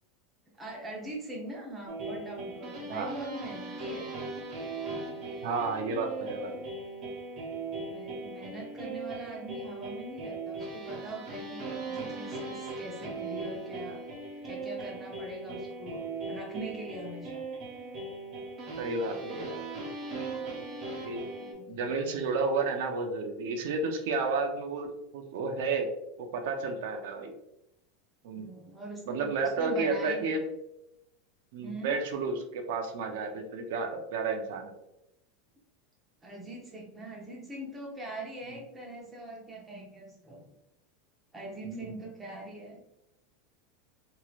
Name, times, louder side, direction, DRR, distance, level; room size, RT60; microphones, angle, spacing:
voice 1, 0.6-4.2 6.2-6.3 7.9-14.0 14.4-16.0 16.3-17.4 21.4-21.8 28.4-30.4 31.6-32.0 36.2-40.4 41.3-42.8, right 1 dB, 15° right, -2 dB, 0.9 m, -42 dB
sound 1, 1.9-21.5, right 3 dB, 40° right, 1.0 m, -39 dB
voice 2, 5.4-6.6 18.8-19.6 21.0-21.2 21.7-25.9 26.2-27.3 28.2-28.5 29.1-30.4 31.5-34.8 38.5-38.6 41.6-42.0, right 4 dB, 70° right, 4 dB, 0.6 m, -32 dB
3.0 x 2.8 x 2.4 m, 0.86 s
supercardioid pair, 140°, 0 cm